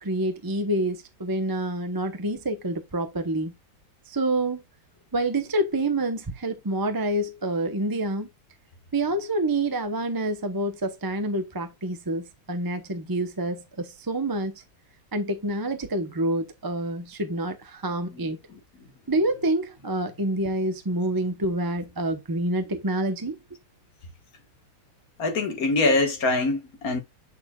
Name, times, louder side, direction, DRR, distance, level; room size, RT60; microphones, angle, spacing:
voice 1, 0.0-3.5 4.1-4.6 5.1-8.3 8.9-14.5 15.1-18.4 19.1-23.4, right 1 dB, 20° right, 0.6 m, -27 dB
voice 2, 25.2-27.0, left 3 dB, 65° left, 2.0 m, -24 dB
6.8 x 6.6 x 2.3 m
omnidirectional pair, 1.7 m